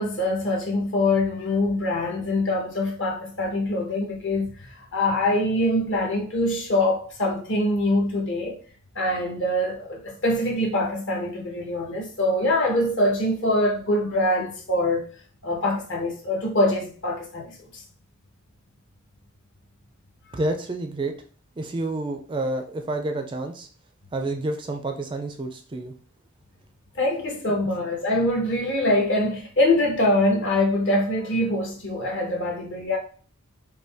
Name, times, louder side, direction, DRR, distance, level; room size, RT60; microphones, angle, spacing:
voice 1, 0.0-4.5 4.9-8.6 8.9-15.0 15.4-17.6 26.9-33.0, left 1 dB, 55° left, 1.3 m, -24 dB
voice 2, 20.3-21.1 21.6-23.7 24.1-25.9 27.5-27.7, right 2 dB, 20° right, 0.4 m, -29 dB
5.2 x 2.2 x 3.5 m
head